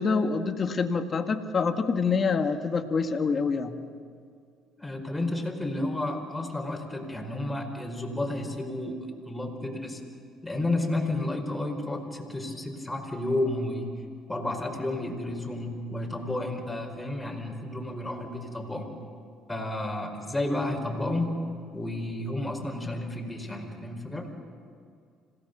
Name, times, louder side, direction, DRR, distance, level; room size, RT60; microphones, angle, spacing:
voice 1, 0.0-3.7, left 5 dB, 40° left, 6 dB, 1.8 m, -26 dB
voice 2, 4.8-10.0 10.4-13.9 14.3-18.9 19.5-21.3 21.7-24.3, left 1 dB, 10° left, 1 dB, 5.1 m, -31 dB
26.5 x 17.5 x 6.8 m, 2.3 s
supercardioid pair, 70°, 0 cm